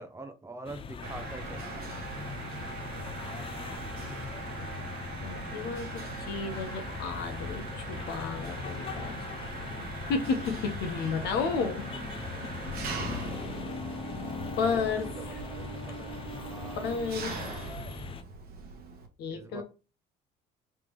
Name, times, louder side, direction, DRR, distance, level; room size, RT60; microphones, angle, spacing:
voice 1, 0.0-2.0 13.4-13.6 13.9-17.0 17.4-17.8 19.3-19.6, right 2 dB, 15° right, 0.6 m, -46 dB
sound 1, 0.6-18.2, left 6 dB, 35° left, 0.4 m, -40 dB
Mechanisms, 1.0-19.1, right 4 dB, 60° right, 1.0 m, -41 dB
voice 2, 5.2-9.2 10.1-11.9 14.6-15.4 16.8-17.4 19.2-19.6, left 5 dB, 80° left, 1.0 m, -32 dB
3.6 x 3.2 x 3.1 m
cardioid pair, 110°, 17 cm